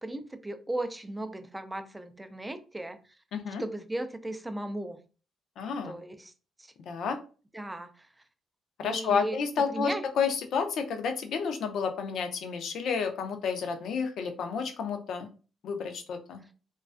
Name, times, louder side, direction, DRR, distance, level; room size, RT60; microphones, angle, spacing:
voice 1, 0.0-3.0 3.6-5.0 5.9-6.3 7.5-8.1 8.8-9.4 9.7-10.0, right 1 dB, 10° right, 8 dB, 0.3 m, -36 dB
voice 2, 3.3-3.6 5.6-6.0 6.9-7.2 8.8-15.3 15.6-16.4, left 6 dB, 70° left, 6 dB, 0.4 m, -30 dB
2.3 x 2.2 x 2.4 m, 0.35 s
cardioid pair, 90°, 0 cm